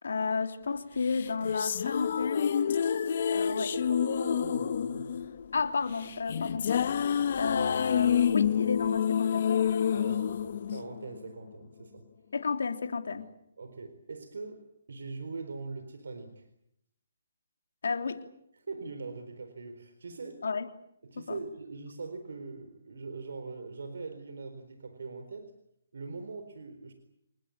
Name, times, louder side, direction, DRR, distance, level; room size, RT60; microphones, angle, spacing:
voice 1, 0.0-2.6 3.3-3.7 5.5-6.9 7.4-9.5 12.3-13.3 17.8-18.2 20.4-20.7 21.2-21.4, left 5 dB, 75° left, 7 dB, 3.2 m, -32 dB
sound 1, 1.1-11.5, left 8 dB, 55° left, 1.1 m, -28 dB
voice 2, 3.6-5.3 9.9-12.0 13.6-16.4 18.5-20.4 21.0-25.5 25.9-26.9, right 4 dB, 75° right, 8 dB, 4.1 m, -42 dB
28.0 x 20.0 x 8.6 m, 0.75 s
hypercardioid pair, 145°, 0 cm